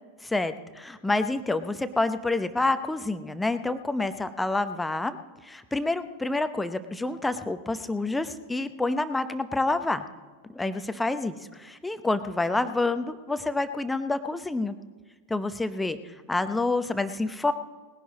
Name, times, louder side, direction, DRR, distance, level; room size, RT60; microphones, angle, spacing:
voice 1, 0.2-5.2 5.4-10.0 10.5-14.8 15.3-16.0 16.3-17.5, left 2 dB, 5° left, 11 dB, 0.7 m, -28 dB
19.5 x 11.0 x 4.1 m, 1.4 s
figure-of-eight pair, 90°, 0 cm